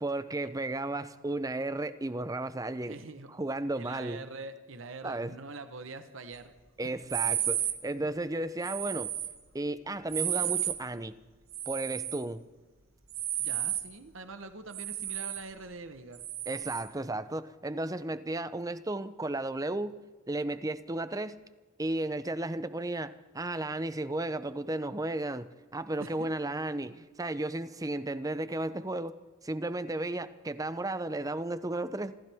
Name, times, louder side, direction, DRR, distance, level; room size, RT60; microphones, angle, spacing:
voice 1, 0.0-3.0 3.3-4.3 5.0-5.4 6.8-9.1 9.5-11.1 11.7-12.5 16.5-20.0 20.3-21.4 21.8-32.2, right 2 dB, 15° right, 0.6 m, -34 dB
voice 2, 2.8-3.3 3.7-6.5 6.8-6.9 13.4-16.2 26.0-26.3 26.9-27.0, right 3 dB, 70° right, 1.1 m, -44 dB
sound 1, 7.1-7.8 8.6-9.3 10.1-10.8 11.5-12.2 13.1-13.9 14.7-15.4 16.2-16.9, right 12 dB, 90° right, 1.5 m, -32 dB
26.5 x 15.0 x 3.6 m
head